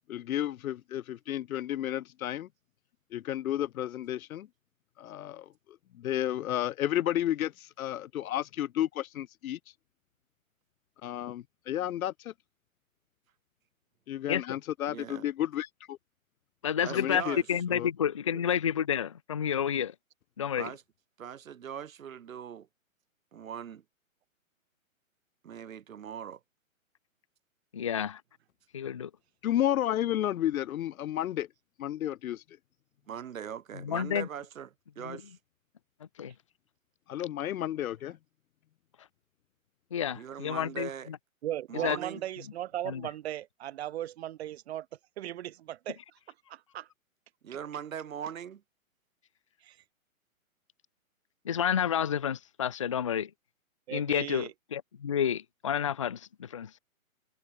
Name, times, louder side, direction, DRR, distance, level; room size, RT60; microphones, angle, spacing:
voice 1, 0.1-2.5 3.1-4.5 5.0-9.6 11.0-12.3 14.1-16.0 16.9-17.4 17.7-17.9 29.4-31.5 31.8-32.4 37.1-38.2, left 12 dB, 85° left, 0.5 m, -32 dB
voice 2, 14.9-15.3 16.8-17.5 20.6-20.8 21.2-22.7 23.3-23.8 25.4-26.4 33.1-34.7 34.9-35.4 40.1-41.1 41.7-42.2 47.4-48.6, right 8 dB, 75° right, 1.5 m, -40 dB
voice 3, 16.6-17.2 17.5-19.9 20.4-20.7 27.7-28.2 28.7-29.1 33.8-34.3 35.0-35.2 36.2-36.3 39.9-41.2 41.8-42.0 42.9-43.0 51.5-53.3 53.9-56.7, left 9 dB, 25° left, 0.3 m, -30 dB
voice 4, 41.4-44.9 45.2-46.2 46.5-46.9 49.6-49.8 53.9-54.5, right 12 dB, 50° right, 1.5 m, -37 dB
hypercardioid pair, 140°, 41 cm